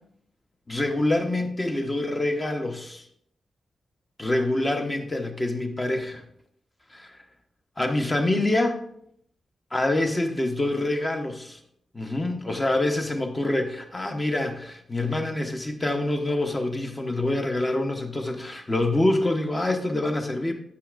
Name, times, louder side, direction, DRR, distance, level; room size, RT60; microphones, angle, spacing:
voice 1, 0.7-3.0 4.2-6.2 6.9-7.2 7.8-8.8 9.7-11.6 11.9-20.5, left 2 dB, 30° left, 5 dB, 1.0 m, -26 dB
8.1 x 5.7 x 2.5 m, 0.70 s
supercardioid pair, 50°, 0 cm